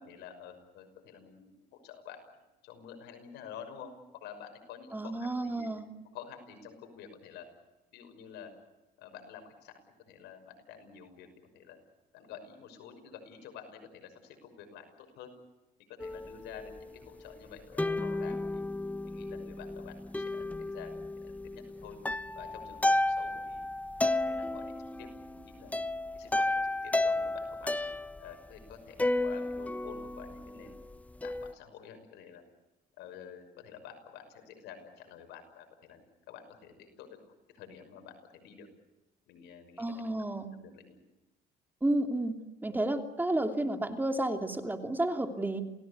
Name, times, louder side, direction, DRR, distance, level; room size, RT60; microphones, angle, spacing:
voice 1, 0.0-2.2 2.6-5.7 6.1-7.4 7.9-8.6 9.0-11.3 11.5-11.8 12.1-15.3 15.9-18.6 19.0-22.0 22.4-23.6 24.0-25.7 26.1-27.9 28.2-30.8 31.2-32.4 33.0-37.2 37.5-38.7 39.3-40.1 40.4-41.0, left 8 dB, 85° left, 7 dB, 6.0 m, -49 dB
voice 2, 4.9-5.8 39.8-40.5 41.8-42.4 42.6-45.6, right 1 dB, 10° right, 5 dB, 2.9 m, -31 dB
sound 1, 16.0-17.3 17.8-28.2 29.0-31.5, left 2 dB, 10° left, 0.9 m, -33 dB
28.5 x 18.5 x 8.4 m, 1.0 s
cardioid pair, 110°, 17 cm